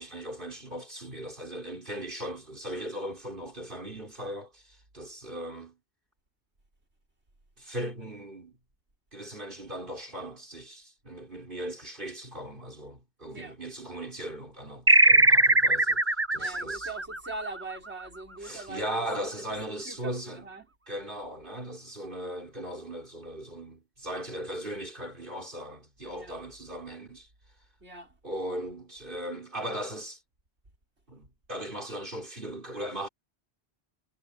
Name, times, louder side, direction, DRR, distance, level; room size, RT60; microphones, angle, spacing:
voice 1, 0.0-5.8 7.6-8.6 9.1-16.0 16.3-16.9 18.4-20.4 20.9-27.3 28.2-30.2 31.1-33.1, right 1 dB, 50° right, 5.3 m, -38 dB
sound 1, 14.9-17.9, right 2 dB, 15° right, 0.8 m, -21 dB
voice 2, 16.3-18.9 19.2-19.6 19.9-20.7 26.1-26.4 27.8-28.2, right 3 dB, 80° right, 5.4 m, -42 dB
omnidirectional pair, 1.1 m